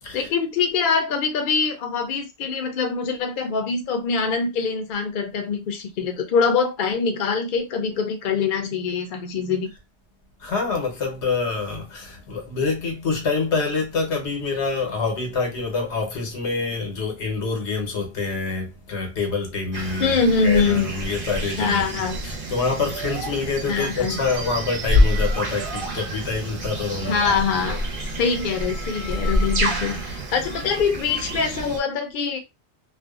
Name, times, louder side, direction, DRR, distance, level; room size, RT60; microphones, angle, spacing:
voice 1, 0.1-9.7 20.0-20.9 21.6-22.2 23.7-24.2 27.1-27.8 28.1-32.4, left 5 dB, 60° left, 0.7 m, -24 dB
voice 2, 10.4-20.2 20.4-27.8, left 4 dB, 90° left, 1.1 m, -26 dB
sound 1, 19.7-31.8, equal, 60° right, 0.8 m, -27 dB
2.5 x 2.1 x 2.3 m
omnidirectional pair, 1.1 m